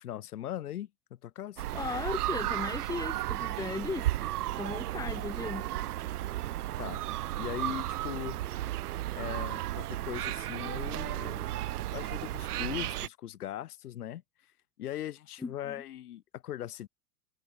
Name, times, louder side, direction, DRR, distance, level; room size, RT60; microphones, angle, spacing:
voice 1, 0.0-1.6 6.8-7.0 7.4-8.7 9.1-14.2 14.8-16.9, left 12 dB, 80° left, 3.3 m, -40 dB
sound 1, 1.6-13.1, right 14 dB, 80° right, 0.8 m, -34 dB
voice 2, 1.7-4.1 4.6-5.7 15.4-15.8, left 4 dB, 10° left, 1.0 m, -36 dB
hypercardioid pair, 110°, 45 cm